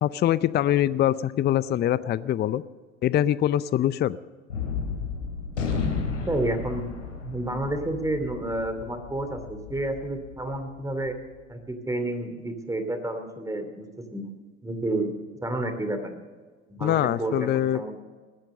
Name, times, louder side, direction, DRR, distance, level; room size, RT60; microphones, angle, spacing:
voice 1, 0.0-2.6 3.0-4.2 16.8-17.8, left 12 dB, 30° left, 18 dB, 0.5 m, -23 dB
Gunshot gunfire, 4.5-11.1, left 5 dB, 90° left, 3.1 m, -33 dB
voice 2, 6.2-6.9 7.2-11.2 11.5-14.3 14.6-15.1 15.4-16.2 16.7-18.0, right 1 dB, 10° right, 8 dB, 2.8 m, -30 dB
20.5 x 10.5 x 6.6 m, 1.5 s
hypercardioid pair, 75°, 36 cm